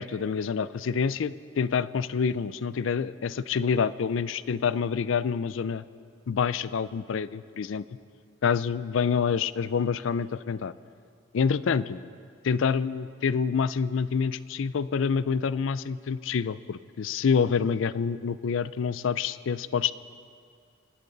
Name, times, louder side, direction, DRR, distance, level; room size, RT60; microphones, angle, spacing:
voice 1, 0.0-5.8 6.3-7.8 8.4-10.7 11.3-12.0 12.4-19.9, left 6 dB, 75° left, 16 dB, 0.4 m, -27 dB
26.0 x 11.0 x 4.0 m, 2.2 s
head